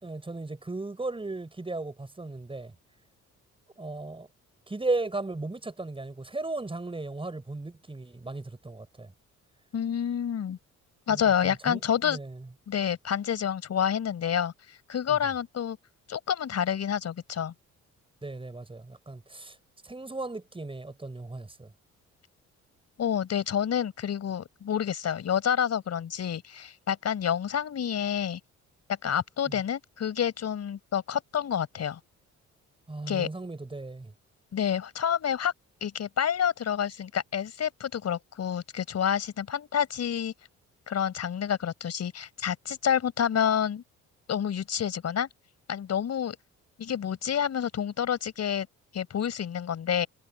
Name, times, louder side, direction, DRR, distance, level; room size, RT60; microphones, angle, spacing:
voice 1, 0.0-2.7 3.8-4.3 4.7-9.1 11.1-12.5 15.1-15.2 18.2-19.6 19.8-21.7 29.5-29.6 32.9-34.1, right 2 dB, 15° right, 5.7 m, -36 dB
voice 2, 9.7-10.6 11.1-12.2 12.7-14.5 14.9-15.8 16.1-17.5 23.0-28.4 29.0-32.0 33.1-33.3 34.5-35.5 35.8-40.3 40.9-43.8 44.3-45.3 45.7-46.4 46.8-48.7 48.9-50.1, left 8 dB, 60° left, 5.1 m, -28 dB
cardioid pair, 90°, 30 cm